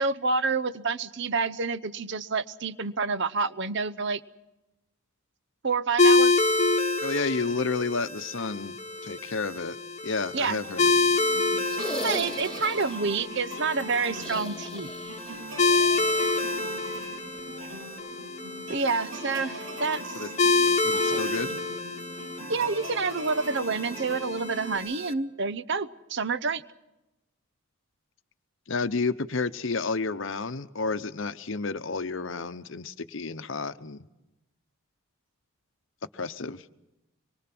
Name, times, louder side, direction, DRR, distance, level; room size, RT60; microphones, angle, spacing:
voice 1, 0.0-4.2 5.6-6.3 10.3-10.6 12.0-14.9 18.7-20.2 21.1-21.2 22.5-26.6, right 4 dB, 55° right, 14 dB, 0.8 m, -28 dB
sound 1, 6.0-25.1, left 3 dB, 30° left, 1.2 m, -28 dB
voice 2, 7.0-8.8 9.0-9.8 10.0-11.0 20.1-20.3 20.8-21.6 28.7-34.1 36.1-36.6, left 4 dB, 60° left, 12 dB, 0.9 m, -31 dB
sound 2, 10.6-24.8, right 1 dB, 85° right, 7.4 m, -40 dB
sound 3, 11.6-13.0 14.1-15.3 15.6-15.7 17.3-17.4, left 1 dB, 5° left, 2.0 m, -37 dB
25.0 x 23.0 x 6.1 m, 0.94 s
head